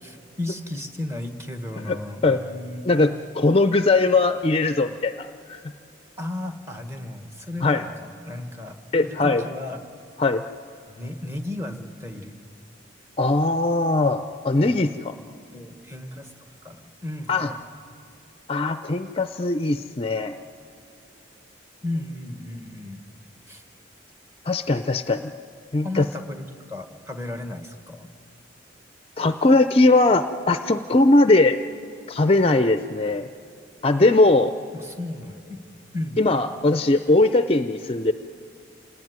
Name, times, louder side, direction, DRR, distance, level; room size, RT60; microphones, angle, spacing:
voice 1, 0.0-2.9 6.2-8.7 9.0-9.8 10.9-12.4 14.6-14.7 15.5-16.3 16.6-17.6 21.8-23.0 23.5-23.6 25.8-26.4 26.7-28.1 34.7-35.6 35.9-36.2, left 1 dB, 15° right, 6 dB, 1.4 m, -34 dB
voice 2, 2.8-5.6 7.6-7.8 8.9-9.4 10.2-10.4 13.2-15.1 17.3-17.5 18.5-20.4 24.5-25.3 25.7-26.1 29.2-31.6 32.1-33.3 33.8-34.5 36.2-38.1, left 2 dB, 30° left, 10 dB, 0.5 m, -20 dB
27.0 x 18.5 x 9.4 m, 2.6 s
head